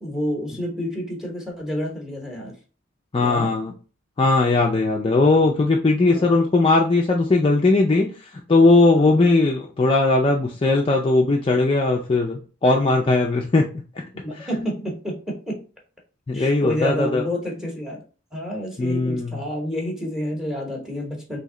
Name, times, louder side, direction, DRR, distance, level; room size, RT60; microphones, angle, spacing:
voice 1, 0.0-2.6 3.2-3.5 6.1-6.4 8.9-9.3 14.1-15.6 16.3-18.0 18.3-21.4, equal, 5° right, 0.9 m, -29 dB
voice 2, 3.1-3.7 4.2-13.6 14.4-14.5 16.3-17.2 18.8-19.4, left 3 dB, 25° left, 0.3 m, -19 dB
3.1 x 2.8 x 3.7 m
head